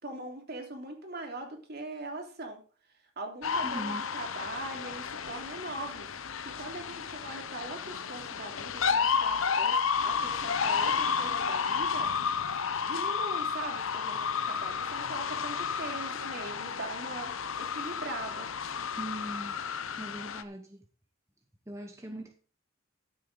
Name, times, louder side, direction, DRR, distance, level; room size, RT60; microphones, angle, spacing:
voice 1, 0.0-2.6 3.2-6.1 6.4-9.7 10.0-12.1 12.8-17.3 17.6-18.5, right 2 dB, 50° right, 3.1 m, -41 dB
sound 1, 3.4-20.4, left 6 dB, 80° left, 0.8 m, -32 dB
voice 2, 3.6-4.0 19.0-19.6 20.0-20.8 21.7-22.3, right 1 dB, 15° right, 0.9 m, -40 dB
13.5 x 8.3 x 3.9 m
head